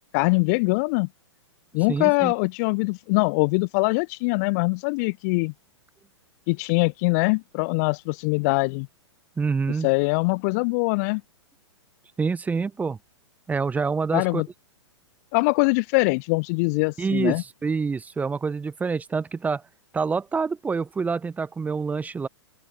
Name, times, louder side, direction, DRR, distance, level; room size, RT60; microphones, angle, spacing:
voice 1, 0.1-1.1 1.7-5.5 6.5-8.9 9.8-11.2 14.1-14.5 15.3-17.4, left 30 dB, 35° left, 0.7 m, -23 dB
voice 2, 1.9-2.3 9.4-9.9 12.2-13.0 13.5-14.4 17.0-19.6 19.9-22.3, right 5 dB, 10° right, 1.5 m, -26 dB
open air
figure-of-eight pair, 110°, 16 cm